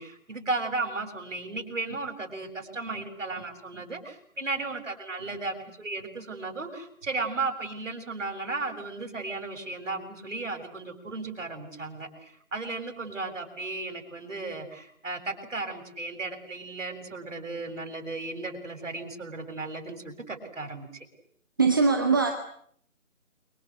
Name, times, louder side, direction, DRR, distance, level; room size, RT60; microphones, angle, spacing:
voice 1, 0.0-20.9, right 3 dB, 60° right, 5 dB, 7.7 m, -35 dB
voice 2, 21.6-22.3, right 4 dB, 15° right, 5 dB, 1.1 m, -21 dB
29.5 x 24.0 x 8.0 m, 0.66 s
figure-of-eight pair, 155°, 41 cm